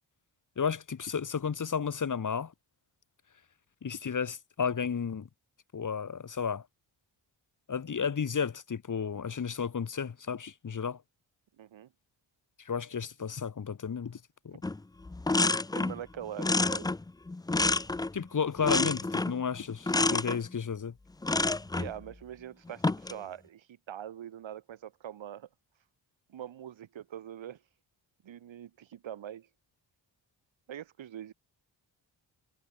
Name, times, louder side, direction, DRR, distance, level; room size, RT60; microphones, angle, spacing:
voice 1, 0.6-2.5 3.8-5.3 5.7-6.6 7.7-11.0 12.6-14.2 14.4-14.6 18.1-20.9, left 6 dB, 40° left, 2.0 m, -32 dB
voice 2, 11.6-11.9 15.7-16.9 21.7-25.5 26.3-27.6 28.2-29.5 30.7-31.3, right 10 dB, 85° right, 2.1 m, -43 dB
sound 1, 14.6-14.8 15.1-16.0 16.4-18.2 18.6-19.4 19.9-20.4 21.2-21.9 22.7-23.2, left 2 dB, 10° left, 0.4 m, -28 dB
wide cardioid pair, 140°, 45 cm